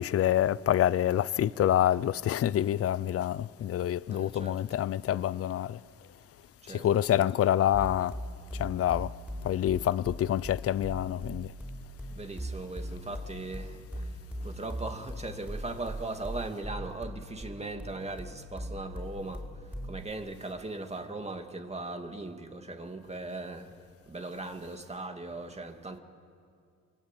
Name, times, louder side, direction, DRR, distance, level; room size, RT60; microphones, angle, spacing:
voice 1, 0.0-5.8 6.7-8.2 8.5-9.1 9.4-11.5, left 11 dB, 50° left, 0.6 m, -27 dB
voice 2, 4.1-4.6 6.6-7.3 12.2-14.1 14.4-19.5 19.8-23.7 24.1-26.0, right 2 dB, 20° right, 2.4 m, -39 dB
sound 1, 7.7-20.1, equal, 5° right, 4.6 m, -39 dB
27.5 x 23.5 x 9.1 m
cardioid pair, 90°, 30 cm